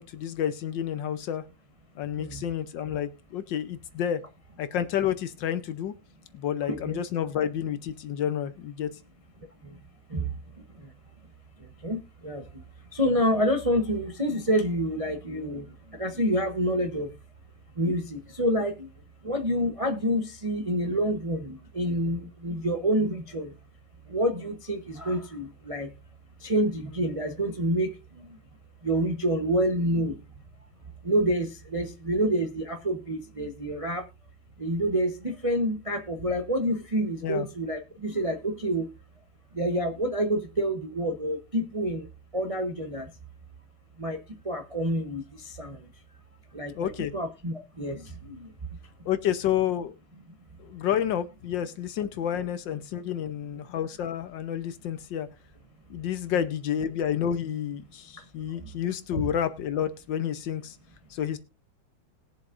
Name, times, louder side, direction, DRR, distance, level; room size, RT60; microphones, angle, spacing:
voice 1, 0.0-1.4 1.9-4.2 4.6-5.9 6.3-8.9 37.2-37.5 46.7-47.1 49.0-49.9 50.6-55.3 55.9-60.8 61.1-61.4, left 9 dB, 70° left, 12 dB, 1.4 m, -30 dB
voice 2, 6.7-7.0 9.6-9.7 10.1-10.3 11.8-12.4 12.9-15.6 16.0-17.1 17.8-18.9 19.2-23.5 24.1-25.9 26.4-27.9 28.8-30.2 31.0-34.0 34.6-38.9 39.5-42.1 42.3-43.1 44.0-44.2 44.4-45.8 46.5-48.4 59.2-59.3, equal, 30° right, 4 dB, 0.6 m, -28 dB
20.5 x 7.3 x 2.5 m, 0.26 s
omnidirectional pair, 2.2 m